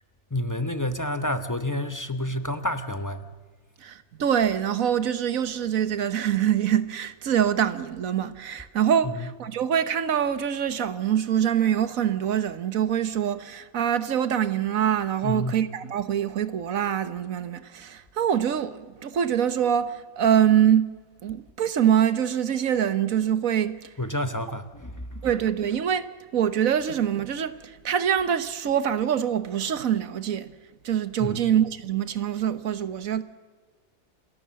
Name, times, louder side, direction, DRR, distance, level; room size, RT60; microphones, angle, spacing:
voice 1, 0.3-3.3 9.0-9.3 15.2-15.5 24.0-25.1 31.2-31.5, left 1 dB, 15° left, 0.8 m, -29 dB
voice 2, 3.8-21.0 21.2-23.9 25.2-26.1 26.3-30.5 30.8-33.2, right 9 dB, 80° right, 1.5 m, -24 dB
28.0 x 13.0 x 7.5 m
omnidirectional pair, 1.4 m